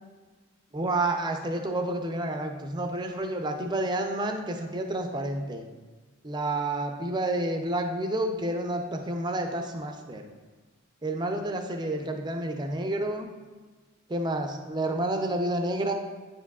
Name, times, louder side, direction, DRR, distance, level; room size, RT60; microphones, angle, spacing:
voice 1, 0.7-5.7 6.2-10.2 11.0-13.3 14.1-15.9, right 1 dB, 20° right, 4 dB, 0.5 m, -29 dB
9.3 x 4.7 x 2.3 m, 1.3 s
head